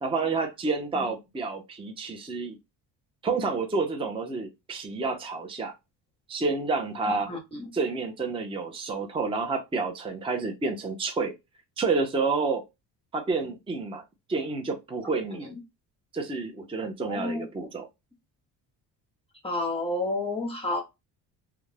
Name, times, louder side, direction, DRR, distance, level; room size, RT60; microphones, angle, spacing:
voice 1, 0.0-2.6 3.2-5.7 6.3-7.3 7.7-11.3 11.8-12.6 13.1-14.0 14.3-15.6 16.1-17.9, right 4 dB, 15° right, 0.5 m, -29 dB
voice 2, 7.1-7.7 15.4-15.5 17.1-17.4 19.4-20.8, left 2 dB, 15° left, 0.9 m, -30 dB
2.4 x 2.2 x 3.2 m
cardioid pair, 90°, 43 cm